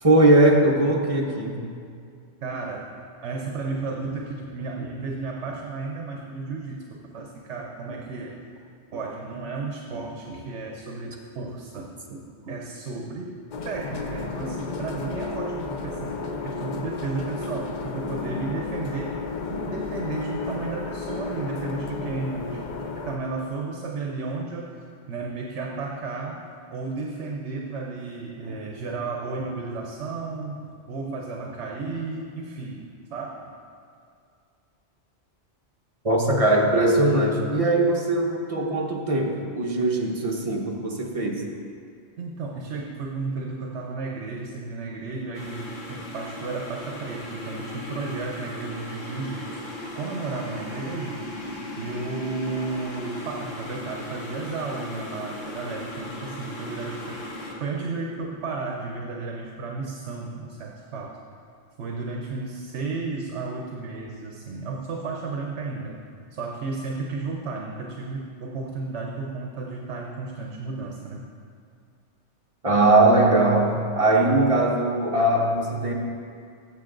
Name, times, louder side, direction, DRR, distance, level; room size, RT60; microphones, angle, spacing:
voice 1, 0.0-1.6 36.0-41.5 72.6-75.9, right 2 dB, 30° right, 0 dB, 1.1 m, -20 dB
voice 2, 2.4-2.9 3.2-8.4 8.9-13.3 13.6-19.2 19.5-32.8 33.1-33.3 42.2-49.6 49.9-51.3 51.8-57.2 57.6-61.2 61.8-66.0 66.3-71.3, right 3 dB, 70° right, 0 dB, 1.1 m, -33 dB
sound 1, 13.5-23.2, left 4 dB, 45° left, 0.7 m, -32 dB
sound 2, 45.3-57.5, left 1 dB, 90° left, 1.9 m, -37 dB
15.5 x 6.8 x 3.9 m, 2.3 s
omnidirectional pair, 1.2 m